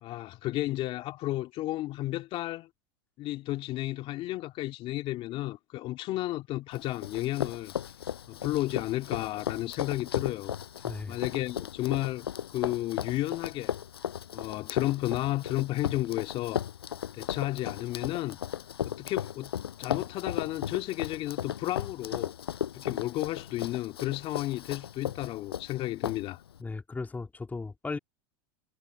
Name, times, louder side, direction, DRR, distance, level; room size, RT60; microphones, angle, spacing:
voice 1, 0.0-2.7 3.2-7.7 8.3-10.5 11.1-13.7 14.3-16.6 17.1-18.4 18.9-19.5 19.8-22.3 22.7-26.4, left 16 dB, 45° left, 2.4 m, -32 dB
Run, 6.7-26.6, left 9 dB, 90° left, 6.4 m, -36 dB
voice 2, 10.8-11.2 26.6-28.0, left 3 dB, 15° left, 2.7 m, -36 dB
hypercardioid pair, 105°, 13 cm